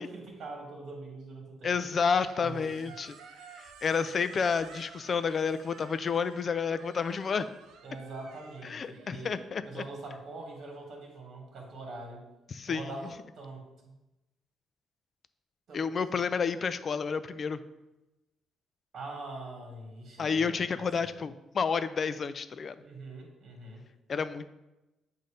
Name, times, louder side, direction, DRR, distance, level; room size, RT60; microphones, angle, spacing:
voice 1, 0.0-1.7 2.4-2.9 7.8-9.4 9.6-12.2 12.7-13.9 15.7-15.9 18.9-21.1 22.8-23.8, right 2 dB, 60° right, 0 dB, 1.7 m, -43 dB
voice 2, 1.6-3.2 3.6-7.5 8.6-9.8 12.5-12.9 15.7-17.6 20.2-22.7 24.1-24.5, left 5 dB, 45° left, 13 dB, 0.4 m, -30 dB
Squeak, 2.0-10.2, right 5 dB, 85° right, 0.6 m, -53 dB
7.7 x 2.7 x 5.0 m, 1.0 s
cardioid pair, 90°, 0 cm